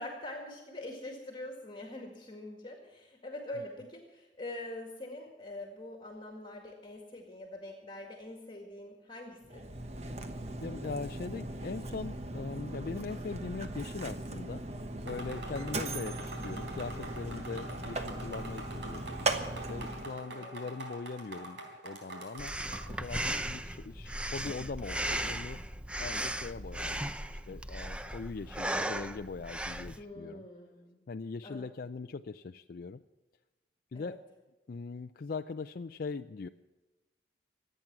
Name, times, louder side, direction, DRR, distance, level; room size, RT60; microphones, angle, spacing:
voice 1, 0.0-9.6 15.5-15.8 20.3-20.7 30.0-31.0 31.4-31.6 33.9-34.2, left 1 dB, 25° left, 2 dB, 2.0 m, -44 dB
Mechanisms, 9.4-20.2, right 2 dB, 35° right, 1.2 m, -38 dB
voice 2, 10.6-14.6 15.0-19.1 19.5-22.5 22.9-25.6 26.0-27.2 27.5-30.4 31.1-33.0 33.9-34.2 34.7-36.5, left 4 dB, 55° left, 7 dB, 0.4 m, -41 dB
sound 1, 15.1-23.0, right 2 dB, 85° right, 3.7 m, -45 dB
Breathing, 22.4-30.0, right 1 dB, 5° right, 0.5 m, -36 dB
25.5 x 9.1 x 6.0 m, 1.1 s
head